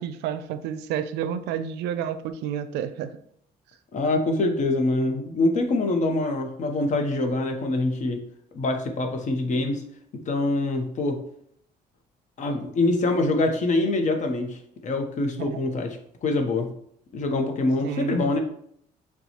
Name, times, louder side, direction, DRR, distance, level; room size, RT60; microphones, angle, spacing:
voice 1, 0.0-3.1 15.4-15.6 17.8-18.2, right 9 dB, 85° right, 11 dB, 0.4 m, -30 dB
voice 2, 3.9-8.2 8.5-9.8 10.3-11.2 12.4-16.7 17.1-18.4, left 2 dB, 45° left, 5 dB, 0.8 m, -25 dB
6.8 x 2.3 x 2.9 m, 0.68 s
cardioid pair, 110°, 17 cm